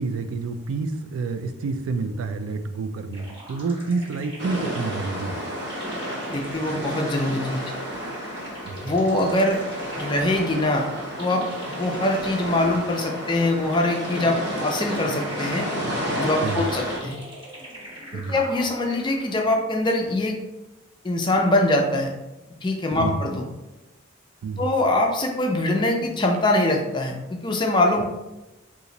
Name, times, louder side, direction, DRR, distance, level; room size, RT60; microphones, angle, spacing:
voice 1, 0.0-5.4 8.6-8.9 16.4-16.6 18.1-18.4 23.0-23.3 24.4-24.7, right 4 dB, 75° right, 9 dB, 0.3 m, -29 dB
sound 1, 3.1-19.5, right 1 dB, 25° right, 0.9 m, -42 dB
sound 2, 4.4-17.0, equal, 55° right, 0.7 m, -31 dB
voice 2, 6.3-7.7 8.8-9.6 10.0-10.8 11.2-11.4 11.8-15.6 16.2-17.2 18.3-20.4 21.0-22.1 22.6-23.4 24.6-28.0, left 1 dB, 20° left, 1 dB, 0.4 m, -23 dB
2.9 x 2.5 x 3.8 m, 1.0 s
head